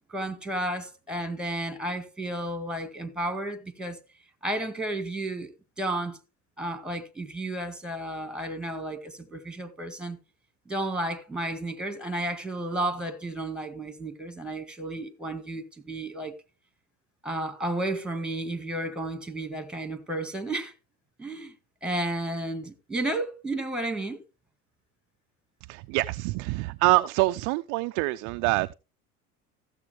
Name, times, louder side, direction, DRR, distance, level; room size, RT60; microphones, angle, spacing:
voice 1, 0.1-4.0 4.4-5.5 5.8-6.2 6.6-10.2 10.7-16.4 17.2-20.7 21.2-21.5 21.8-24.2, right 1 dB, ahead, 1.8 m, -32 dB
voice 2, 25.7-28.7, right 21 dB, 45° right, 0.4 m, -25 dB
15.0 x 7.2 x 3.4 m
hypercardioid pair, 80°, 46 cm